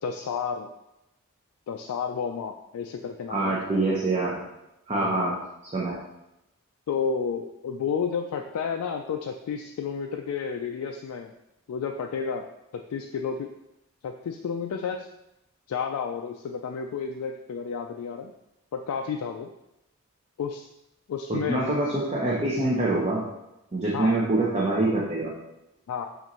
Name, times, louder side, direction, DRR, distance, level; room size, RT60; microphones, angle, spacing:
voice 1, 0.0-0.7 1.7-3.6 4.9-5.4 6.9-11.3 11.7-12.4 12.7-13.5 14.0-15.1 15.7-18.3 18.7-19.5 20.4-20.7 21.1-21.7 23.9-24.2 25.9-26.1, left 6 dB, 85° left, 3 dB, 0.3 m, -31 dB
voice 2, 3.3-4.4 4.9-5.3 5.7-6.0 21.3-23.3 23.7-25.3, right 2 dB, 30° right, -5 dB, 0.6 m, -25 dB
6.7 x 2.5 x 3.0 m, 0.90 s
head